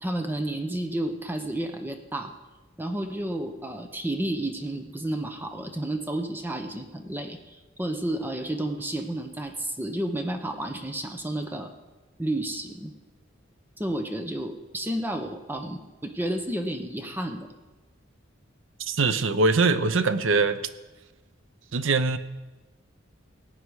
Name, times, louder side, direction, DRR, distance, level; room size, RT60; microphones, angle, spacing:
voice 1, 0.0-2.3 2.8-11.7 12.2-12.9 13.8-17.5, right 1 dB, 10° right, 5 dB, 0.8 m, -31 dB
voice 2, 18.8-20.6 21.7-22.2, right 3 dB, 85° right, 12 dB, 0.7 m, -22 dB
17.0 x 9.0 x 4.8 m, 1.1 s
head